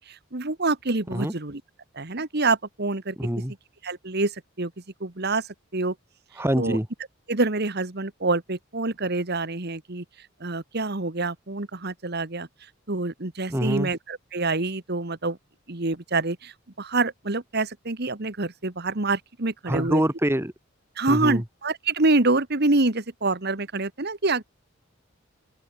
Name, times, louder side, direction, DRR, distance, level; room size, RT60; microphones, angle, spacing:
voice 1, 0.0-1.6 2.0-3.2 3.8-4.7 5.0-5.5 5.7-6.0 6.6-6.8 7.3-10.0 10.4-12.5 12.9-15.4 15.7-20.0 21.0-24.4, right 3 dB, 55° right, 1.8 m, -26 dB
voice 2, 3.2-3.5 6.4-6.9 13.5-13.9 19.7-20.5 21.1-21.4, equal, 10° right, 2.9 m, -25 dB
open air
head